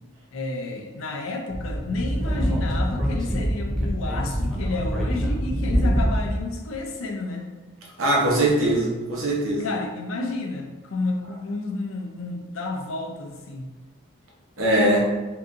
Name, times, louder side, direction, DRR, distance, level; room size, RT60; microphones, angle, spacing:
voice 1, 0.3-7.5 9.6-13.7, left 2 dB, 75° left, 3 dB, 0.5 m, -31 dB
Speech / Wind, 1.5-6.4, equal, 5° left, 0.4 m, -25 dB
voice 2, 8.0-9.7 14.6-15.0, right 1 dB, 80° right, -3 dB, 0.9 m, -21 dB
3.7 x 2.7 x 2.5 m, 1.2 s
head